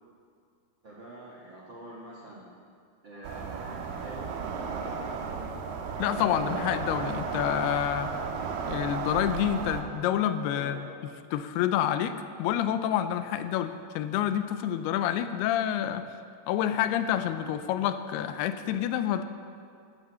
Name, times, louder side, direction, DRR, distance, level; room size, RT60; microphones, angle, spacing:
voice 1, 0.8-2.5 3.0-4.3 4.6-5.5 10.5-10.9, right 1 dB, 60° right, -5 dB, 1.2 m, -45 dB
sound 1, 3.2-9.8, right 5 dB, 75° right, 2.7 m, -34 dB
voice 2, 6.0-8.2 8.7-10.8 11.3-16.1 16.5-19.2, left 10 dB, 85° left, 10 dB, 2.5 m, -28 dB
14.0 x 13.0 x 4.3 m, 2.3 s
omnidirectional pair, 4.6 m